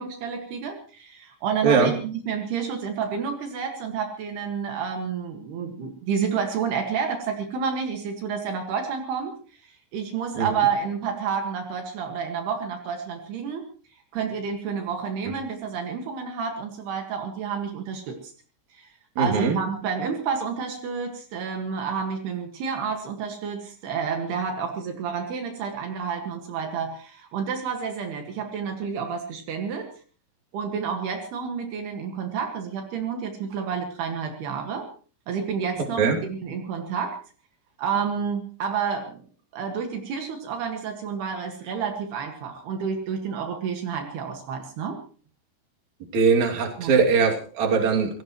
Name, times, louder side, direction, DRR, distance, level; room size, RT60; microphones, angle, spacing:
voice 1, 0.0-9.4 9.6-13.6 14.1-18.3 18.7-18.9 19.2-29.9 30.5-34.9 35.3-37.2 37.8-39.2 39.5-45.0 46.8-47.0, right 6 dB, 70° right, 4 dB, 3.8 m, -29 dB
voice 2, 19.2-19.6 36.0-36.2 46.1-48.2, right 5 dB, 45° right, 2 dB, 3.6 m, -21 dB
26.0 x 17.5 x 3.1 m, 0.39 s
omnidirectional pair, 4.8 m